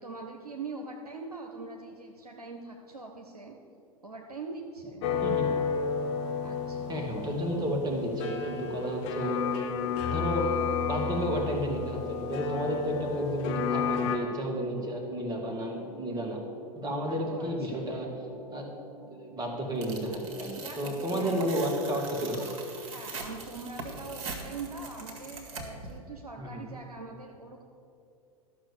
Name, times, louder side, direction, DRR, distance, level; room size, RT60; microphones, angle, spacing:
voice 1, 0.0-3.5 4.0-5.1 6.4-7.0 17.1-18.0 20.6-21.9 22.7-27.6, right 3 dB, 85° right, 1 dB, 0.8 m, -42 dB
sound 1, 5.0-14.2, left 6 dB, 50° left, 1.1 m, -31 dB
voice 2, 5.2-5.6 6.9-9.4 10.1-10.5 10.8-16.4 16.7-18.1 18.5-18.7 19.1-22.5 26.4-26.7, equal, 20° right, 1 dB, 2.1 m, -32 dB
sound 2, 9.1-20.4, right 1 dB, 75° left, 1.6 m, -51 dB
Tearing, 19.8-25.9, right 4 dB, 55° right, 1.8 m, -42 dB
12.5 x 6.1 x 7.0 m, 2.6 s
figure-of-eight pair, 90°, 19 cm